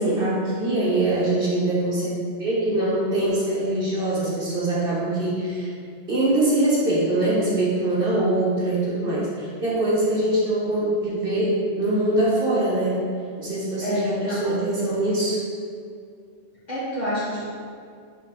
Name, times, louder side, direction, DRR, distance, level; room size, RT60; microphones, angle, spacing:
voice 1, 0.0-5.7 6.1-13.0 13.4-15.4, right 1 dB, 50° right, -7 dB, 1.5 m, -23 dB
voice 2, 13.8-14.6 16.7-17.5, equal, 35° left, -9 dB, 1.8 m, -28 dB
7.9 x 3.7 x 3.8 m, 2.3 s
omnidirectional pair, 1.2 m